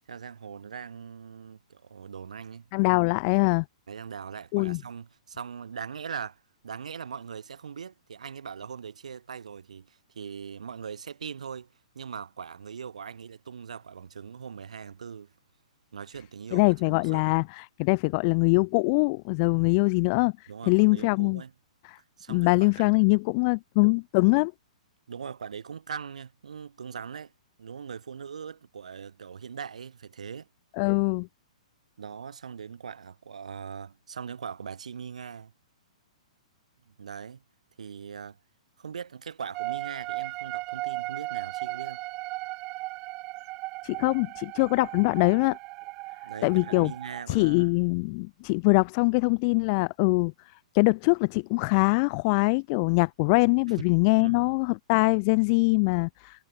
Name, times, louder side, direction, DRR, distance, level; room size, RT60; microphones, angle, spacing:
voice 1, 0.1-2.7 3.9-15.3 15.9-17.4 20.5-21.5 22.2-23.0 25.1-27.3 27.6-30.5 32.0-35.5 36.9-37.4 37.8-38.4 38.8-42.0 46.2-47.8 53.7-53.8 54.2-54.5, right 7 dB, 75° right, 7.5 m, -41 dB
voice 2, 2.7-3.6 4.5-4.8 16.5-20.3 20.7-21.4 22.3-24.5 30.8-31.3 43.8-45.6 46.4-46.9 47.3-50.3 50.7-56.5, left 32 dB, 40° left, 0.7 m, -23 dB
sound 1, 39.5-47.2, right 22 dB, 35° right, 3.0 m, -36 dB
hypercardioid pair, 120°, 4 cm